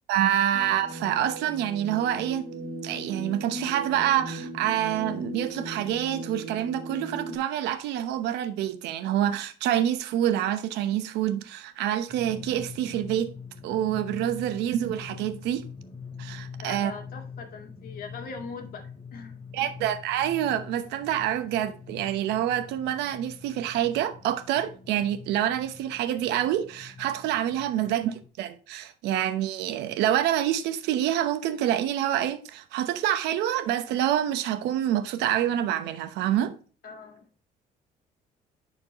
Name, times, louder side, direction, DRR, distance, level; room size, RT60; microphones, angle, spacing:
voice 1, 0.1-2.5 2.8-13.3 13.6-15.7 16.2-16.9 19.5-36.6, right 11 dB, 90° right, 0.9 m, -27 dB
sound 1, 0.5-7.4, right 2 dB, 55° right, 1.7 m, -38 dB
Drum, 12.1-28.3, left 6 dB, 30° left, 4.3 m, -44 dB
voice 2, 16.6-19.7 27.8-28.0 36.8-37.2, left 4 dB, 60° left, 2.1 m, -42 dB
10.5 x 4.5 x 2.9 m
cardioid pair, 110°, 17 cm